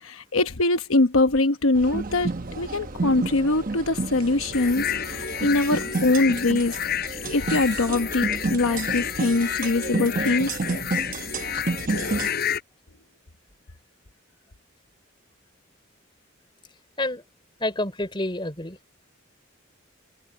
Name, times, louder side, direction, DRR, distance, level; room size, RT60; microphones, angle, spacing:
voice 1, 0.0-2.3 2.6-6.8 7.3-10.5, left 2 dB, 90° left, 1.0 m, -23 dB
sound 1, 1.7-12.3, right 3 dB, 45° right, 0.9 m, -31 dB
sound 2, 4.5-12.6, left 8 dB, 50° left, 4.3 m, -30 dB
voice 2, 17.6-18.8, left 1 dB, 25° left, 3.8 m, -28 dB
head